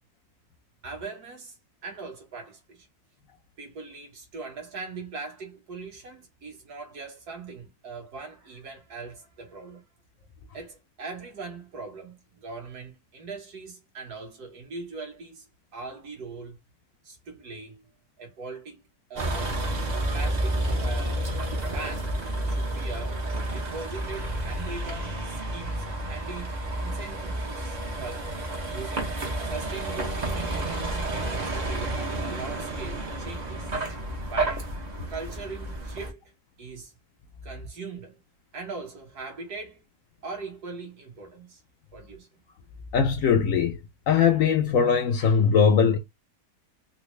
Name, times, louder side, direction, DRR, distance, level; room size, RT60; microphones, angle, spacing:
voice 1, 0.8-1.6 1.8-2.9 3.6-9.8 10.5-15.5 15.7-16.6 17.0-17.9 18.2-18.8 19.1-19.6 20.1-21.3 21.7-23.2 23.5-28.3 28.7-29.2 29.4-33.7 34.1-34.7 35.1-36.2 36.6-36.9 37.4-38.2 38.5-39.8 40.2-41.6 41.9-42.3, right 4 dB, 70° right, 1.7 m, -40 dB
Vehicle, 19.2-36.1, right 1 dB, 40° right, 0.6 m, -30 dB
voice 2, 42.9-43.8 44.1-46.0, left 6 dB, 65° left, 0.8 m, -20 dB
4.0 x 2.0 x 3.1 m
omnidirectional pair, 1.8 m